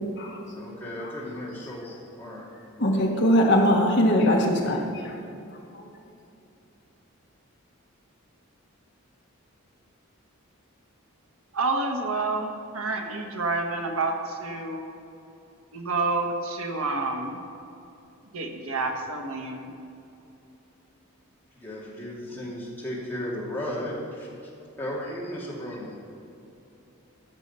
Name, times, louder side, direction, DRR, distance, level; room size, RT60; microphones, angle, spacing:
voice 1, 0.5-2.5 21.5-24.5 24.8-25.9, left 1 dB, 10° left, -7 dB, 2.5 m, -35 dB
voice 2, 2.8-4.8 5.0-5.1, equal, 50° left, 0 dB, 1.4 m, -21 dB
voice 3, 11.5-14.8 15.7-17.4 18.3-19.7, right 3 dB, 80° right, 3 dB, 1.3 m, -29 dB
14.0 x 6.4 x 5.6 m, 2.8 s
head